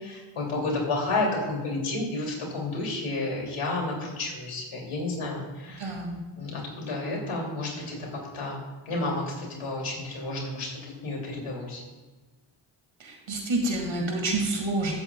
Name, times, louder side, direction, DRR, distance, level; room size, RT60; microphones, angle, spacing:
voice 1, 0.0-5.9 6.4-11.8, left 2 dB, 75° left, -1 dB, 3.1 m, -31 dB
voice 2, 5.8-6.2 13.0-14.9, right 2 dB, 65° right, 1 dB, 2.5 m, -28 dB
15.5 x 7.9 x 2.4 m, 1.2 s
cardioid pair, 60°, 50 cm